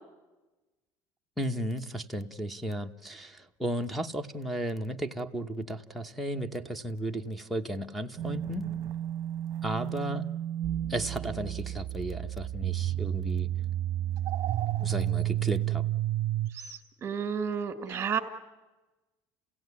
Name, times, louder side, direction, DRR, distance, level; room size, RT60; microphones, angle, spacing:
voice 1, 1.4-8.7 9.6-10.3 10.9-13.5 14.8-15.9, right 1 dB, ahead, 1 dB, 1.0 m, -34 dB
sound 1, 8.2-16.5, right 13 dB, 45° right, 0.9 m, -31 dB
voice 2, 16.5-18.2, right 7 dB, 25° right, 6 dB, 2.2 m, -32 dB
30.0 x 17.0 x 9.6 m, 1.1 s
cardioid pair, 155°, 8 cm